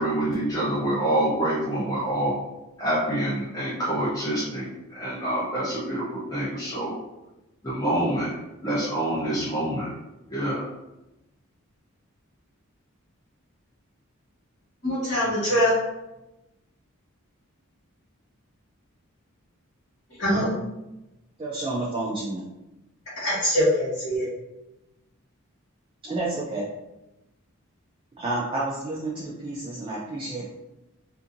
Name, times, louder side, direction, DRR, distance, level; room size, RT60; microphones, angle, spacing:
voice 1, 0.0-2.3 2.8-7.0 7.6-8.3 8.6-9.9 10.3-10.6, right 1 dB, 15° left, -10 dB, 0.7 m, -26 dB
voice 2, 14.8-15.7 20.2-20.5 23.2-24.2, equal, 45° left, -11 dB, 1.3 m, -23 dB
voice 3, 21.4-22.4 26.0-26.7 28.2-30.5, right 2 dB, 25° right, -6 dB, 0.4 m, -30 dB
2.6 x 2.6 x 2.5 m, 0.95 s
head